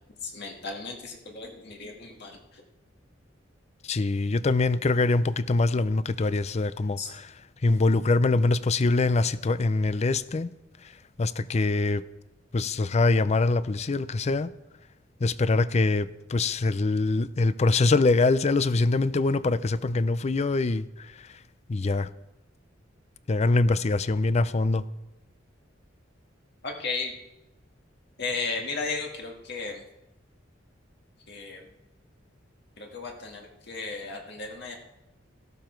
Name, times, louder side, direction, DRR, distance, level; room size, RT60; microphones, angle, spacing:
voice 1, 0.2-2.6 7.0-7.1 26.6-27.1 28.2-29.8 31.3-31.7 32.8-34.8, left 4 dB, 60° left, 1.9 m, -35 dB
voice 2, 3.8-7.3 7.6-10.5 10.8-10.9 11.2-12.0 12.5-14.5 15.2-21.4 21.7-22.1 23.3-24.8, left 3 dB, 35° left, 0.5 m, -24 dB
14.0 x 12.5 x 4.5 m
head